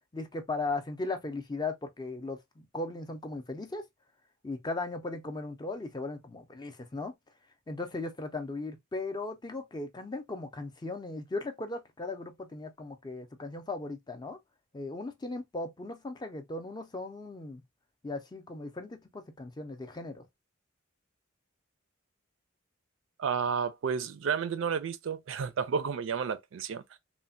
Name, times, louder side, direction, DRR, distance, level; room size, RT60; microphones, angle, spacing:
voice 1, 0.1-3.8 4.4-7.1 7.7-14.4 14.7-17.6 18.0-20.3, left 3 dB, 20° left, 0.4 m, -37 dB
voice 2, 23.2-26.8, right 6 dB, 65° right, 0.4 m, -31 dB
3.1 x 2.1 x 2.5 m
head